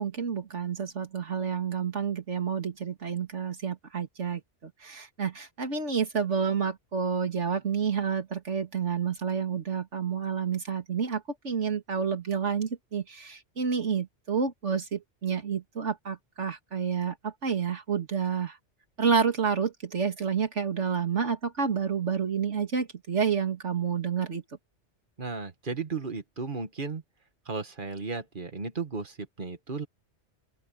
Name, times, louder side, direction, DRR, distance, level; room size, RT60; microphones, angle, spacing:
voice 1, 0.0-18.6 19.0-24.4, right 6 dB, 85° right, 2.5 m, -29 dB
voice 2, 25.2-27.0 27.5-29.9, right 4 dB, 45° right, 1.8 m, -35 dB
open air
omnidirectional pair, 1.2 m